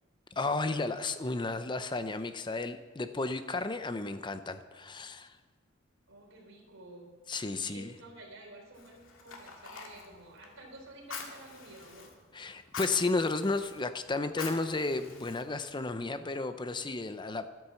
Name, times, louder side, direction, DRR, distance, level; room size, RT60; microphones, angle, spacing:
voice 1, 0.4-5.4 7.3-7.9 12.3-17.5, left 3 dB, 25° left, 10 dB, 0.6 m, -33 dB
voice 2, 6.1-7.1 7.5-12.1, right 1 dB, 80° right, 1 dB, 3.6 m, -51 dB
Fire, 8.7-15.9, left 5 dB, 85° left, 2.2 m, -47 dB
13.0 x 10.0 x 7.1 m, 1.3 s
head